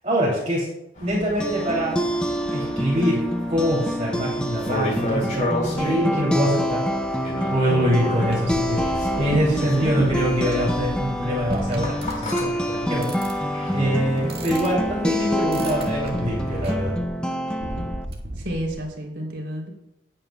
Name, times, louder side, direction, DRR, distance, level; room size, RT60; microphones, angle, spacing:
voice 1, 0.0-0.7 1.0-2.0 2.5-6.8 7.5-16.9, equal, 40° right, -6 dB, 2.7 m, -24 dB
sound 1, 0.9-16.9, equal, 45° left, 4.0 m, -34 dB
sound 2, 1.1-18.1, equal, 5° left, 0.6 m, -27 dB
sound 3, 8.3-18.8, right 1 dB, 60° right, 1.8 m, -37 dB
voice 2, 18.4-19.7, equal, 80° right, 0 dB, 3.1 m, -30 dB
18.0 x 8.9 x 2.3 m, 0.87 s
head